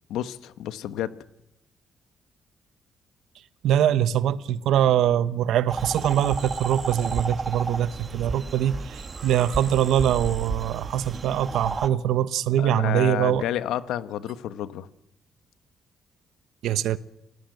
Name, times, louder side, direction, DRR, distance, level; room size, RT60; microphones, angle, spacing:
voice 1, 0.1-1.1 12.6-14.9, left 12 dB, 85° left, 1.2 m, -30 dB
voice 2, 3.6-13.4 16.6-17.0, right 10 dB, 80° right, 1.1 m, -23 dB
sound 1, 5.7-11.9, right 4 dB, 35° right, 1.7 m, -32 dB
27.5 x 18.5 x 7.9 m
cardioid pair, 90°, 0 cm